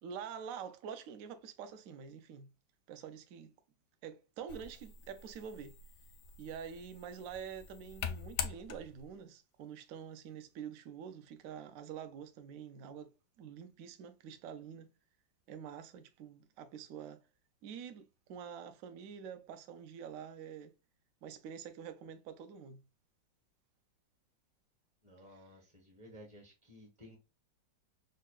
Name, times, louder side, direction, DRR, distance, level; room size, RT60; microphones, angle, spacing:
voice 1, 0.0-2.5 2.9-3.5 4.0-5.7 6.4-14.9 15.5-17.2 17.6-20.7 21.2-22.8, right 7 dB, 65° right, 0.8 m, -47 dB
sound 1, 4.5-9.2, left 7 dB, 70° left, 0.8 m, -44 dB
voice 2, 25.0-27.2, equal, 25° right, 0.6 m, -55 dB
6.5 x 2.2 x 2.3 m
omnidirectional pair, 2.0 m